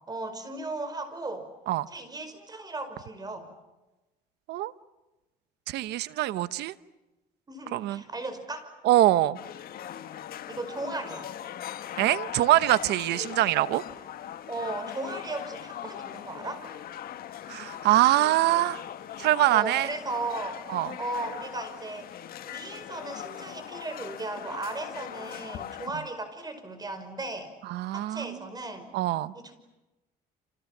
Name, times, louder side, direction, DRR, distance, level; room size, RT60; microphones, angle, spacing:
voice 1, 0.1-1.5 1.9-3.5 7.5-8.8 10.5-11.3 14.5-16.7 19.5-20.6 21.0-22.1 22.5-27.5 27.9-28.9 29.3-29.5, right 2 dB, 25° right, 10 dB, 5.3 m, -36 dB
voice 2, 5.7-6.7 7.7-8.0 8.8-9.4 12.0-13.8 17.5-18.8 19.2-19.9 20.7-20.9 27.7-28.4 28.9-29.3, right 14 dB, 80° right, 15 dB, 1.0 m, -24 dB
sound 1, 9.4-25.9, left 10 dB, 60° left, 1.7 m, -40 dB
29.0 x 27.5 x 7.4 m, 1.0 s
cardioid pair, 110°, 17 cm